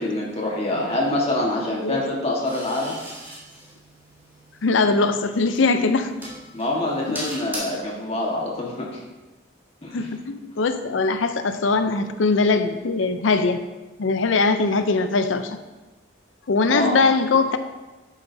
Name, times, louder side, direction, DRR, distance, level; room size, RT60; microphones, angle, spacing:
voice 1, 0.0-2.9 6.5-9.0 9.8-10.1 16.7-17.0, left 1 dB, 30° left, -3 dB, 1.5 m, -25 dB
sound 1, 2.4-7.6, right 1 dB, 10° right, 2.3 m, -40 dB
voice 2, 4.6-6.1 7.1-7.2 9.9-13.6 14.0-15.6 16.5-17.6, left 3 dB, 85° left, 9 dB, 0.6 m, -21 dB
11.0 x 7.2 x 2.7 m, 1.1 s
head